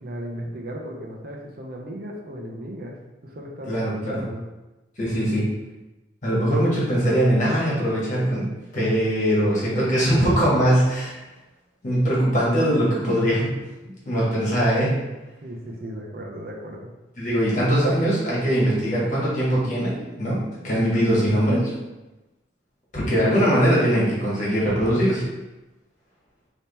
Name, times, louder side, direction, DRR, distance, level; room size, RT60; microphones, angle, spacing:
voice 1, 0.0-3.0 3.2-3.8 4.0-4.5 9.8-9.9 15.4-16.9, equal, 55° right, 0 dB, 0.6 m, -35 dB
voice 2, 3.7-4.1 5.0-5.5 6.2-8.5 8.7-11.2 11.8-13.6 14.0-15.0 17.2-21.7 22.9-25.3, equal, 45° left, -6 dB, 1.5 m, -21 dB
3.5 x 2.9 x 4.1 m, 1.1 s
head